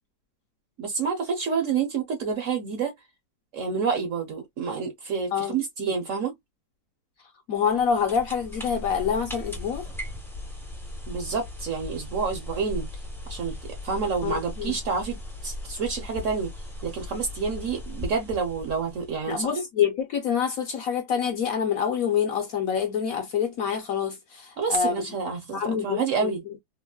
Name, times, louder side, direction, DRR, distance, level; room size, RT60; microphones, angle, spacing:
voice 1, 0.8-2.9 3.5-6.3 11.1-12.9 13.3-13.6 13.8-15.2 15.4-16.5 16.8-19.6 24.6-26.4, right 5 dB, 55° right, 0.9 m, -28 dB
voice 2, 7.5-9.9 14.2-14.8 19.3-25.0 25.5-26.3, left 7 dB, 65° left, 0.9 m, -26 dB
sound 1, 7.6-19.4, left 1 dB, 5° left, 0.4 m, -38 dB
3.9 x 2.0 x 2.2 m
omnidirectional pair, 1.9 m